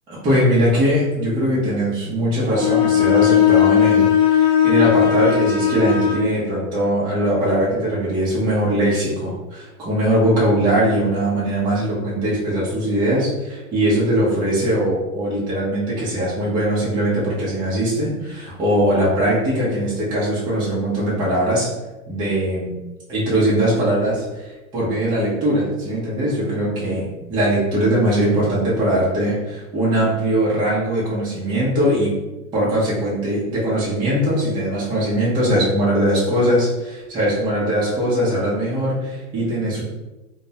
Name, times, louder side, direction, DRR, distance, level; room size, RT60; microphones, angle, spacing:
voice 1, 0.2-21.7 22.1-22.7 23.1-32.1 32.5-39.8, right 1 dB, 10° right, -8 dB, 0.4 m, -20 dB
Bowed string instrument, 2.5-6.3, left 10 dB, 45° left, 0.5 m, -17 dB
2.2 x 2.0 x 2.7 m, 1.1 s
hypercardioid pair, 125°, 43 cm